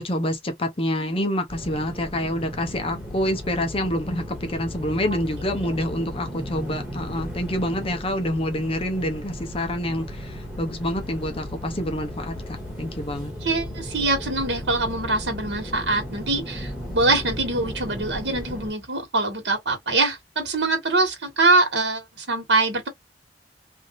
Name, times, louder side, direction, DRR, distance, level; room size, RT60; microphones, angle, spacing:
voice 1, 0.0-13.3, left 1 dB, 35° left, 0.8 m, -27 dB
sound 1, 1.5-18.7, equal, 5° right, 1.6 m, -35 dB
voice 2, 13.4-22.9, right 2 dB, 90° right, 1.4 m, -23 dB
3.4 x 2.6 x 2.5 m
head